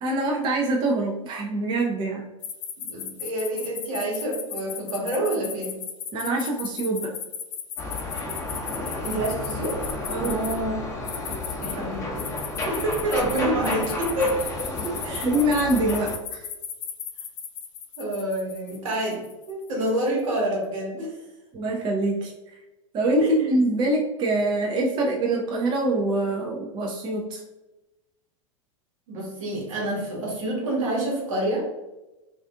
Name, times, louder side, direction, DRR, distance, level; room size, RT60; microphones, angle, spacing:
voice 1, 0.0-2.2 6.1-7.1 10.1-10.4 14.8-14.9 15.2-16.4 21.5-22.3 22.9-27.4, right 2 dB, 25° right, -1 dB, 0.4 m, -24 dB
sound 1, 2.4-10.5 11.1-11.7 12.2-20.0, left 8 dB, 65° left, 0.4 m, -35 dB
voice 2, 2.8-5.8 9.0-9.8 10.2-10.8 11.6-12.3 12.6-14.4 15.0-15.3 18.0-21.2 23.2-23.5 29.1-31.6, right 1 dB, 70° right, -2 dB, 1.1 m, -28 dB
sound 2, 7.8-16.2, left 2 dB, 15° left, 0.7 m, -32 dB
2.4 x 2.4 x 2.3 m, 1.0 s
hypercardioid pair, 95°, 17 cm